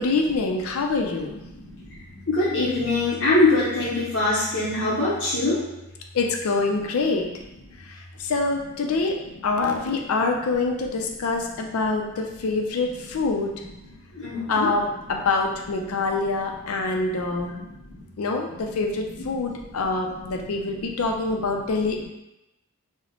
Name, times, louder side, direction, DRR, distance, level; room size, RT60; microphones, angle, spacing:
voice 1, 0.0-1.4 6.1-7.3 8.2-9.2 9.4-13.5 14.4-17.6 18.2-22.1, left 3 dB, 85° left, 2 dB, 0.5 m, -25 dB
voice 2, 2.3-5.6 14.1-14.7 16.8-17.2 17.5-18.0 18.6-18.7 19.9-20.2, left 2 dB, 60° left, -9 dB, 0.8 m, -24 dB
3.0 x 2.1 x 3.9 m, 0.93 s
head